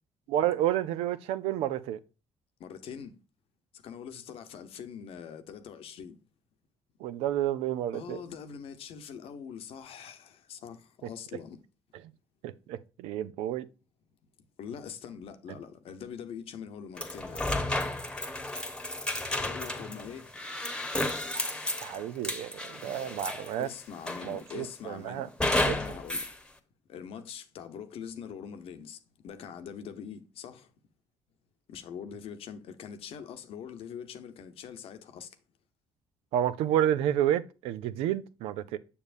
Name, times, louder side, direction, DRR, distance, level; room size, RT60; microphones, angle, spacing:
voice 1, 0.3-2.0 7.0-8.2 12.4-13.7 21.8-23.7 24.2-25.3 25.6-25.8 36.3-38.8, right 11 dB, 90° right, 0.5 m, -30 dB
voice 2, 2.6-3.2 3.7-6.2 7.9-11.6 14.6-17.6 19.3-20.3 23.6-26.3 26.9-30.7 31.7-35.4, left 7 dB, 75° left, 0.9 m, -43 dB
sound 1, 17.0-23.6 24.1-24.7 25.4-26.3, left 1 dB, 10° left, 1.1 m, -32 dB
7.0 x 6.7 x 2.5 m
supercardioid pair, 70°, 10 cm